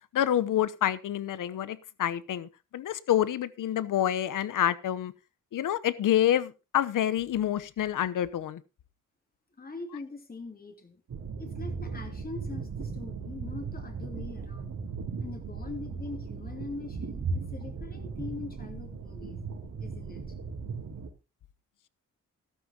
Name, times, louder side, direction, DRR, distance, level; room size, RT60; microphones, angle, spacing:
voice 1, 0.1-5.1 5.5-8.6, left 11 dB, 80° left, 0.9 m, -27 dB
voice 2, 9.6-11.0 11.4-14.7 15.2-19.4 19.8-20.2, left 3 dB, 30° left, 3.0 m, -42 dB
sound 1, 11.1-21.1, right 4 dB, 70° right, 3.7 m, -37 dB
14.5 x 12.5 x 2.9 m
cardioid pair, 115°, 31 cm